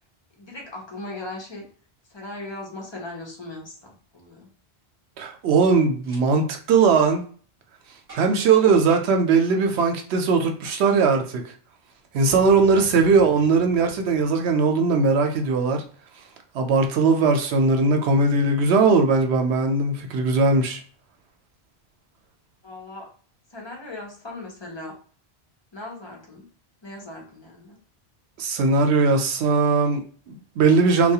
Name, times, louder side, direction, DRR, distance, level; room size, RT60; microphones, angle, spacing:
voice 1, 0.4-1.6 2.1-4.5 8.5-8.7 12.7-12.9 22.6-23.1 23.5-24.9 25.7-26.5 26.8-27.8, left 2 dB, 30° left, 0.6 m, -38 dB
voice 2, 5.2-7.3 7.9-11.6 12.1-15.8 16.1-16.3 16.5-20.8 28.4-31.1, right 4 dB, 80° right, 0.8 m, -20 dB
Boom, 6.0-6.2 6.9-7.1 8.1-8.5 8.9-9.2 9.8-9.9 10.6-11.0 12.2-14.9, equal, 40° right, 0.9 m, -46 dB
2.3 x 2.2 x 2.7 m
omnidirectional pair, 1.1 m